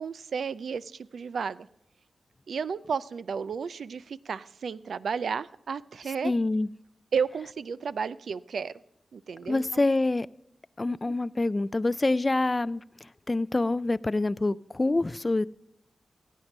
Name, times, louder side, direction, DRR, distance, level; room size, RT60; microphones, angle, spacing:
voice 1, 0.0-1.7 2.5-6.3 7.1-8.7 9.1-9.8 10.9-11.2, right 6 dB, 80° right, 0.4 m, -33 dB
voice 2, 6.2-6.7 9.5-10.3 10.8-15.5, left 2 dB, 35° left, 0.4 m, -26 dB
16.0 x 9.1 x 5.3 m
cardioid pair, 45°, 0 cm